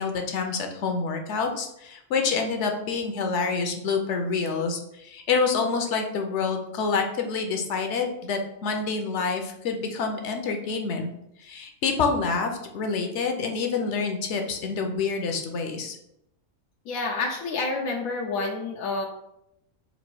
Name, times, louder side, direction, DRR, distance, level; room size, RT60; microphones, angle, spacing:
voice 1, 0.0-11.1 11.4-16.0, left 4 dB, 65° left, 4 dB, 0.9 m, -27 dB
voice 2, 16.9-19.1, left 3 dB, 85° left, 0 dB, 1.1 m, -28 dB
4.1 x 2.6 x 4.5 m, 0.80 s
omnidirectional pair, 1.4 m